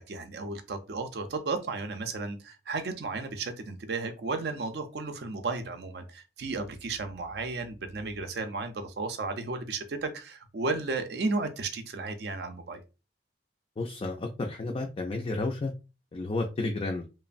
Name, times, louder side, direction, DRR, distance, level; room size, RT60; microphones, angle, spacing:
voice 1, 0.0-12.8, right 3 dB, 65° right, 0.5 m, -34 dB
voice 2, 13.8-15.7 16.1-17.1, left 2 dB, 30° left, 0.3 m, -31 dB
3.0 x 2.0 x 2.5 m
head